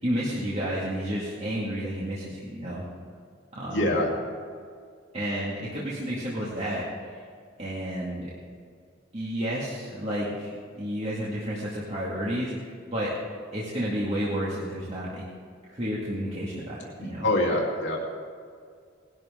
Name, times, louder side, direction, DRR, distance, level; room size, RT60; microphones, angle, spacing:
voice 1, 0.0-2.8 3.6-3.8 5.1-6.8 7.1-7.2 7.6-8.3 9.1-12.5 12.9-13.1 13.5-15.2 15.7-17.3, equal, 35° right, -7 dB, 2.2 m, -31 dB
voice 2, 3.7-4.1 17.0-18.0, left 1 dB, 65° left, -2 dB, 2.5 m, -25 dB
19.0 x 12.0 x 3.8 m, 2.1 s
head